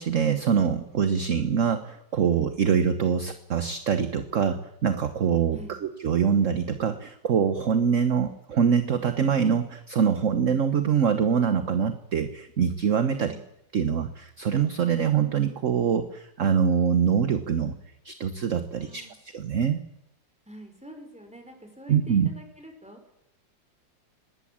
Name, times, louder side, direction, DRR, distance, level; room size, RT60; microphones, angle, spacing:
voice 1, 0.0-5.6 6.0-13.3 13.7-17.7 18.0-19.0 19.3-19.8 21.9-22.3, right 7 dB, 50° right, 10 dB, 1.3 m, -24 dB
voice 2, 18.7-19.1 20.5-23.0, right 1 dB, 5° right, 5 dB, 4.9 m, -46 dB
21.0 x 19.0 x 8.7 m, 0.80 s
omnidirectional pair, 2.0 m